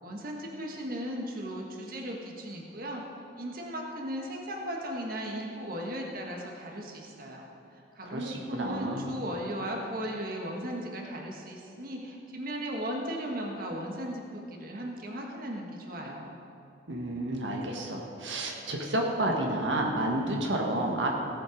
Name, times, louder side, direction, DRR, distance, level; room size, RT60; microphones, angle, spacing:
voice 1, 0.0-3.0 3.4-7.4 7.7-16.4, equal, 50° right, 0 dB, 1.5 m, -36 dB
voice 2, 8.1-9.1 16.9-21.2, right 1 dB, 85° right, 0 dB, 1.5 m, -30 dB
17.0 x 7.7 x 5.2 m, 2.7 s
head